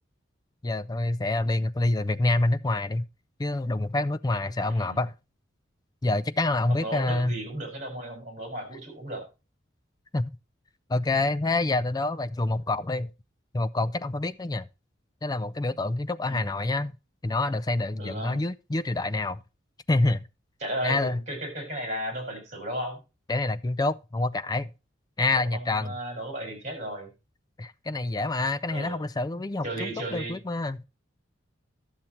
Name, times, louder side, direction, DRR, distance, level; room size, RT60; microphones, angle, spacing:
voice 1, 0.6-3.1 3.4-5.1 6.0-7.3 10.1-10.3 10.9-13.1 13.5-14.7 15.2-16.9 17.2-19.4 19.9-20.2 20.8-21.2 23.3-24.7 25.2-25.9 27.6-30.8, left 2 dB, 20° left, 0.4 m, -27 dB
voice 2, 4.7-5.0 6.7-9.3 16.2-16.6 18.0-18.4 20.6-23.0 25.3-27.1 28.7-29.0 29.6-30.4, right 1 dB, 40° right, 5.3 m, -35 dB
12.0 x 7.2 x 4.3 m
head